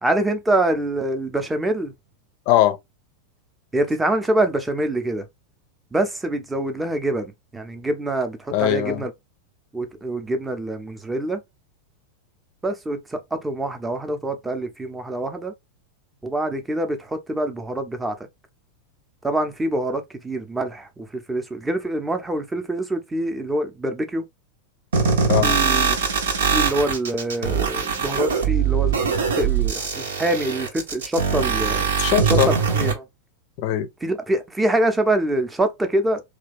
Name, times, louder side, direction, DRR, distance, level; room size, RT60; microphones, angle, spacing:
voice 1, 0.0-1.9 3.7-5.2 5.9-9.1 9.7-11.4 12.6-15.5 16.2-18.3 19.2-24.2 25.4-26.0 26.5-31.9 32.5-33.0 34.0-36.2, right 1 dB, 10° right, 0.7 m, -25 dB
voice 2, 2.5-2.8 8.5-9.0 25.3-25.6 32.0-32.5 33.6-33.9, left 12 dB, 45° left, 0.6 m, -20 dB
sound 1, 24.9-32.9, right 6 dB, 65° right, 0.8 m, -22 dB
3.2 x 2.4 x 3.3 m
figure-of-eight pair, 90°, 0 cm